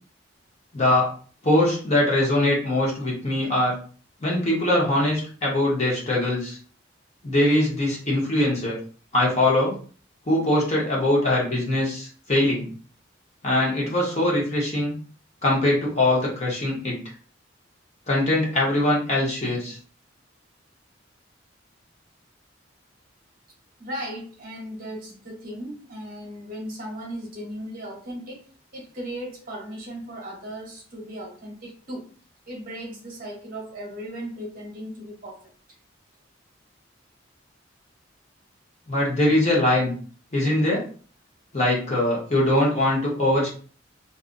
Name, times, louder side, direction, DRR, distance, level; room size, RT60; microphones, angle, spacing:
voice 1, 0.7-1.1 1.4-3.8 4.2-6.6 7.2-8.8 9.1-9.7 10.3-12.7 13.4-14.9 15.4-17.0 18.1-19.8 38.9-39.9 40.3-40.8 41.5-43.5, left 1 dB, 35° left, -4 dB, 1.0 m, -22 dB
voice 2, 23.8-28.4 28.7-32.1 32.5-35.4, equal, 45° right, -2 dB, 1.0 m, -36 dB
2.6 x 2.4 x 2.5 m, 0.41 s
head